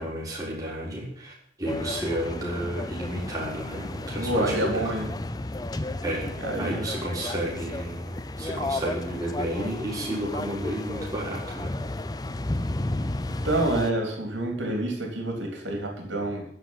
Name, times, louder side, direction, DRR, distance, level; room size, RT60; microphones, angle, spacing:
voice 1, 0.0-4.9 6.0-11.7, right 1 dB, 20° right, -4 dB, 4.2 m, -32 dB
sound 1, 1.7-13.9, left 2 dB, 20° left, 0.5 m, -33 dB
voice 2, 4.1-5.1 6.4-6.9 13.4-16.5, right 1 dB, 85° right, 1 dB, 3.5 m, -27 dB
15.0 x 5.3 x 9.6 m, 0.66 s
head